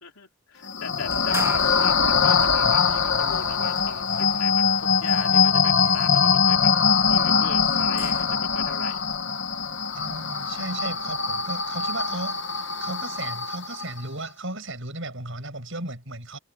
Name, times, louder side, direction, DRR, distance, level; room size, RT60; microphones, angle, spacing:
voice 1, 0.0-6.7 7.1-9.0, left 5 dB, 80° left, 3.3 m, -39 dB
sound 1, 0.6-14.0, left 5 dB, 55° left, 1.8 m, -23 dB
sound 2, 1.1-8.6, right 2 dB, 15° right, 3.6 m, -44 dB
voice 2, 9.9-12.4 12.8-16.4, right 2 dB, 60° right, 7.0 m, -35 dB
head